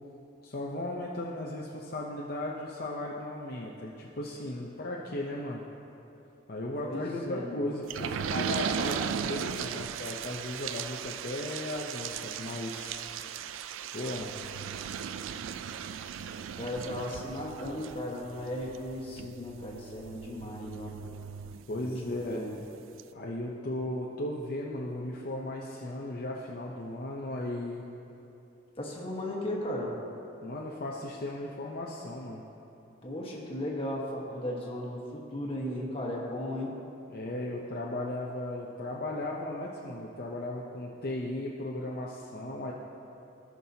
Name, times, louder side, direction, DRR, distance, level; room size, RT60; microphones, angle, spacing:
voice 1, 0.4-5.6 6.5-13.0 13.9-14.3 21.7-22.4 23.1-27.8 30.4-32.4 37.1-42.7, left 1 dB, 50° left, -3 dB, 0.6 m, -36 dB
voice 2, 6.8-7.6 16.5-21.0 21.8-22.6 28.8-29.9 33.0-36.7, left 1 dB, 30° left, -3 dB, 1.3 m, -36 dB
sound 1, 7.9-22.2 22.6-22.7 23.0-23.1, right 7 dB, 85° right, 0.3 m, -37 dB
18.0 x 6.0 x 2.8 m, 2.9 s
head